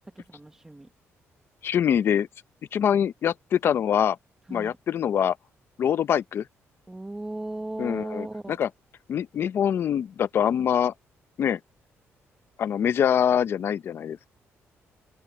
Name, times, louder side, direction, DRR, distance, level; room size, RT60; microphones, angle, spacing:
voice 1, 0.1-0.9 4.5-4.8 6.9-8.6, right 2 dB, 10° right, 1.1 m, -36 dB
voice 2, 1.6-2.3 2.7-4.2 4.5-5.4 5.8-6.4 7.8-8.7 9.1-10.9 11.4-11.6 12.6-14.3, left 9 dB, 50° left, 0.6 m, -24 dB
open air
cardioid pair, 160°, 5 cm